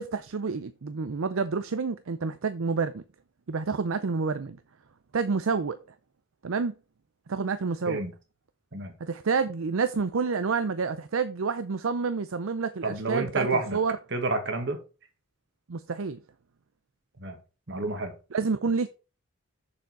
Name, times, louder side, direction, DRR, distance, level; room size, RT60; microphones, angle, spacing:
voice 1, 0.0-3.0 3.5-4.6 5.1-5.8 6.4-6.7 7.3-8.0 9.0-13.9 15.7-16.2 18.3-18.9, right 5 dB, 70° right, 0.5 m, -28 dB
voice 2, 12.8-13.8 14.1-14.8 17.2-17.4 17.7-18.1, right 2 dB, 55° right, 1.8 m, -29 dB
7.0 x 6.5 x 4.7 m
head